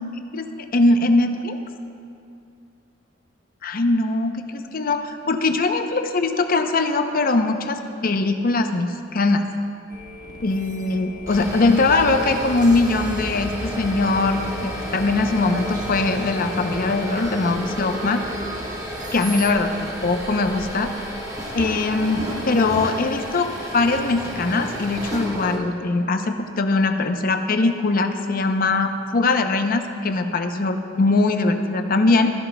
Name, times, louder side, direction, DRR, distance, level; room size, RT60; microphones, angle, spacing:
voice 1, 0.7-1.6 3.6-9.4 10.4-18.2 19.1-20.9 21.5-32.3, left 3 dB, 50° left, 7 dB, 0.6 m, -21 dB
sound 1, 9.9-19.5, equal, 45° right, 1.0 m, -39 dB
sound 2, 11.1-25.6, equal, 20° right, 1.2 m, -31 dB
14.5 x 11.0 x 2.2 m, 2.5 s
head